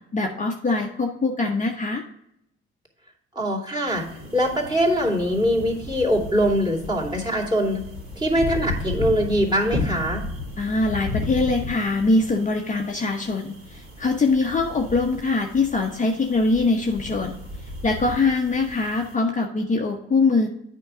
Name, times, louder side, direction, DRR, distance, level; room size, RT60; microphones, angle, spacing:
voice 1, 0.1-2.0 10.6-17.3 17.6-20.5, left 3 dB, 25° left, 1 dB, 0.9 m, -23 dB
voice 2, 3.3-4.0 4.3-7.8 8.2-10.2, equal, 15° right, 1 dB, 2.6 m, -22 dB
sound 1, 3.9-19.1, left 2 dB, 45° right, 2.7 m, -34 dB
8.7 x 4.6 x 4.9 m, 0.76 s
hypercardioid pair, 55°, 32 cm